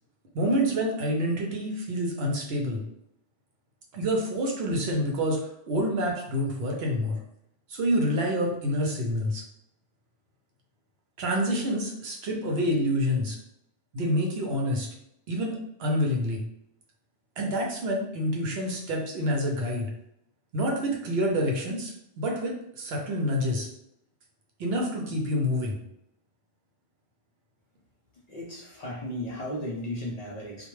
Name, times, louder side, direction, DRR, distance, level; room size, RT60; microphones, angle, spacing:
voice 1, 0.3-2.8 3.9-7.2 7.7-9.4 11.2-13.4 13.9-14.9 15.3-15.5 15.8-16.4 17.4-19.9 20.5-23.7 24.6-25.8, equal, 80° right, 0 dB, 0.9 m, -27 dB
voice 2, 28.3-30.7, left 1 dB, 55° left, -3 dB, 0.5 m, -35 dB
2.2 x 2.2 x 3.0 m, 0.75 s
omnidirectional pair, 1.0 m